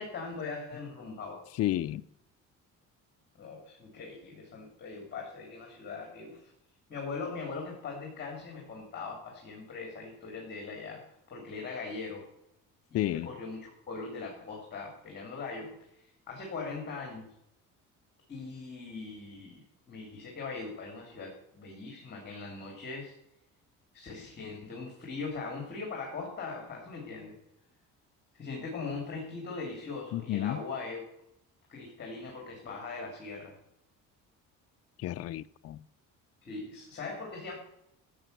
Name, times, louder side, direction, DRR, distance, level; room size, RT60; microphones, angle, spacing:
voice 1, 0.0-1.4 3.4-6.5 6.9-12.3 12.9-17.3 18.3-23.1 23.9-27.4 28.4-31.0 31.7-33.6 36.4-37.5, left 4 dB, 30° left, 0 dB, 3.2 m, -40 dB
voice 2, 1.6-2.0 12.9-13.3 30.1-30.6 35.0-35.8, left 14 dB, 50° left, 11 dB, 0.5 m, -31 dB
14.0 x 8.3 x 6.8 m, 0.81 s
cardioid pair, 145°, 32 cm